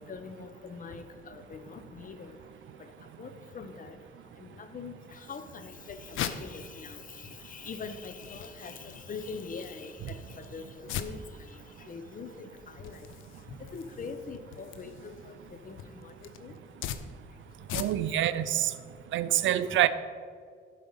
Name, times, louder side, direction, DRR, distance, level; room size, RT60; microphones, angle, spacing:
voice 1, 0.0-2.4 3.2-4.0 4.4-11.5 11.9-12.5 12.8-13.1 13.5-15.4 15.6-16.1 16.4-16.5 19.7-19.8, left 5 dB, 45° left, 9 dB, 0.9 m, -43 dB
sound 1, 5.5-18.3, left 9 dB, 85° left, 0.6 m, -42 dB
voice 2, 17.7-18.7 19.1-19.9, right 12 dB, 75° right, 13 dB, 0.5 m, -26 dB
11.5 x 4.8 x 5.6 m, 2.1 s
cardioid pair, 90°, 20 cm